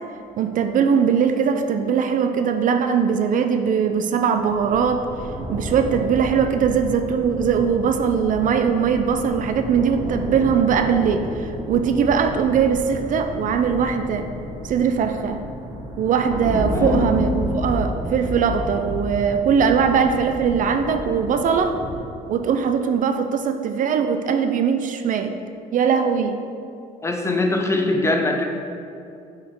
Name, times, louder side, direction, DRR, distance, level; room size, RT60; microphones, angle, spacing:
voice 1, 0.4-5.1 5.5-14.3 14.6-15.4 16.0-21.8 22.3-25.3 25.7-26.4, right 6 dB, 50° right, 7 dB, 0.4 m, -20 dB
sound 1, 4.3-21.9, equal, 25° right, 1.2 m, -31 dB
voice 2, 16.7-17.5 27.0-28.5, left 2 dB, 15° left, 3 dB, 0.7 m, -22 dB
8.0 x 4.8 x 3.7 m, 2.5 s
cardioid pair, 110°, 17 cm